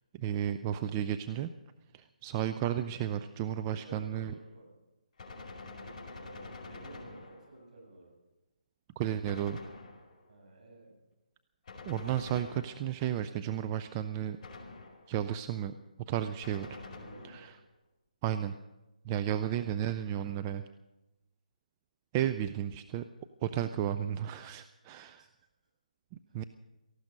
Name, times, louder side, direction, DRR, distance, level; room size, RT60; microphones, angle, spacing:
voice 1, 0.2-1.5 1.9-4.3 9.0-9.6 11.9-14.4 15.1-15.7 16.1-16.7 17.2-17.5 18.2-18.5 19.1-20.6 22.1-23.0 23.4-25.2 26.3-26.4, right 10 dB, 20° right, 9 dB, 0.4 m, -33 dB
voice 2, 3.7-4.7 5.7-8.2 10.3-10.9 16.8-17.5 25.2-25.3 26.3-26.4, right 2 dB, 55° right, 0 dB, 7.7 m, -53 dB
Gunshot gunfire, 5.2-7.7 9.2-10.3 11.7-13.1 14.4-15.2 16.4-17.6, left 3 dB, 35° left, 4.7 m, -47 dB
18.0 x 15.0 x 5.3 m, 1.0 s
figure-of-eight pair, 155°, 4 cm